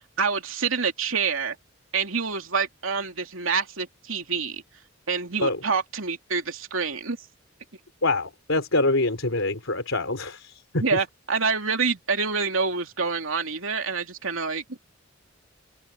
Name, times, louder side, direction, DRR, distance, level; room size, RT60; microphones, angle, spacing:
voice 1, 0.2-1.6 1.9-4.6 5.1-7.2 10.8-14.8, right 5 dB, 85° right, 2.9 m, -27 dB
voice 2, 8.0-11.0, left 2 dB, 85° left, 3.5 m, -25 dB
open air
head